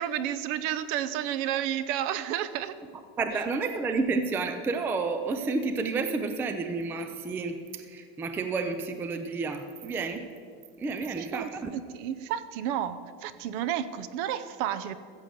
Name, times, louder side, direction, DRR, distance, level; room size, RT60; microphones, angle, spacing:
voice 1, 0.0-2.8 3.3-3.5 11.2-15.0, right 10 dB, 50° right, 14 dB, 0.7 m, -31 dB
voice 2, 3.2-10.3 10.8-11.7, right 4 dB, 5° right, 8 dB, 0.3 m, -30 dB
14.5 x 7.5 x 6.7 m, 2.1 s
supercardioid pair, 155°, 31 cm